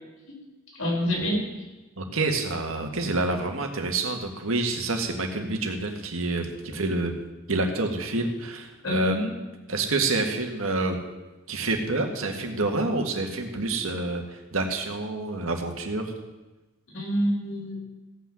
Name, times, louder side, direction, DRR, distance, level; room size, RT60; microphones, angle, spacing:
voice 1, 0.8-1.4 8.8-9.3 16.9-17.8, equal, 80° left, -2 dB, 4.5 m, -27 dB
voice 2, 2.0-7.1 7.5-9.3 9.7-11.0 11.5-16.1, right 2 dB, 75° right, 4 dB, 1.7 m, -28 dB
16.0 x 6.1 x 7.7 m, 1.1 s
head